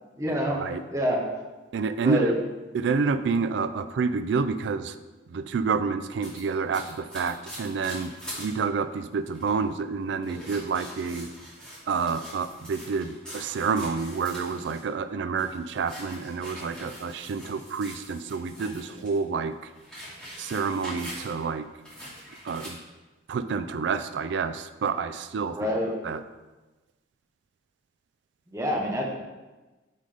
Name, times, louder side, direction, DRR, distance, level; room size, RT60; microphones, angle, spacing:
voice 1, 0.2-0.6 0.9-1.2 2.0-2.3 25.5-25.9 28.5-29.0, equal, 15° right, -2 dB, 0.9 m, -26 dB
voice 2, 1.7-2.4 2.7-5.0 5.3-11.3 11.9-19.7 20.4-21.7 22.4-22.8 23.3-25.7 26.0-26.2, right 5 dB, 65° right, 11 dB, 0.3 m, -28 dB
sound 1, 6.2-8.5 8.9-9.0 9.3-9.7 10.2-14.9 15.3-19.2 19.5-21.5 21.8-22.7, equal, 5° left, 1.9 m, -43 dB
5.6 x 3.9 x 4.9 m, 1.2 s
head